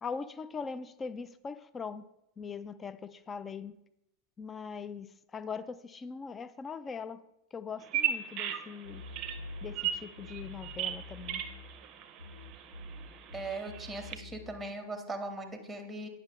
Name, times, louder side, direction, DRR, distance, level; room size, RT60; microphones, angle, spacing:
voice 1, 0.0-2.1 2.4-3.7 4.4-5.1 5.3-7.2 7.5-9.0 9.6-11.4, left 5 dB, 20° left, 14 dB, 0.3 m, -41 dB
Bird vocalization bird call bird song, 7.8-14.2, right 9 dB, 35° right, 0.6 m, -37 dB
sound 1, 8.8-11.9 12.2-14.7, left 2 dB, 85° right, 0.5 m, -46 dB
voice 2, 13.3-16.1, right 2 dB, 5° right, 7 dB, 0.9 m, -39 dB
8.9 x 5.8 x 3.4 m, 0.84 s
figure-of-eight pair, 90°, 0 cm